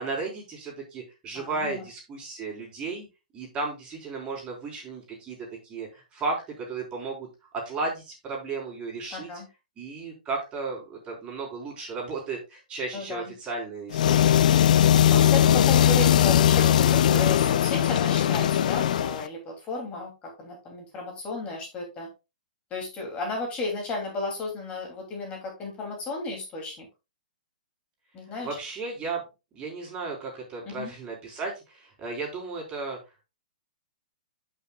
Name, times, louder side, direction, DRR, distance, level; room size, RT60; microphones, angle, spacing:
voice 1, 0.0-3.1 3.3-7.3 7.5-9.3 9.8-14.4 28.4-29.2 29.5-33.0, right 3 dB, 25° right, 0 dB, 4.0 m, -34 dB
voice 2, 1.3-1.8 9.1-9.5 12.9-13.3 15.1-22.1 22.7-26.9 28.1-28.5 30.6-30.9, left 2 dB, 25° left, 0 dB, 2.8 m, -34 dB
Lawn Mower Edit, 13.9-19.3, left 10 dB, 65° left, 0.5 m, -20 dB
11.5 x 5.8 x 2.4 m, 0.26 s
hypercardioid pair, 130°, 5 cm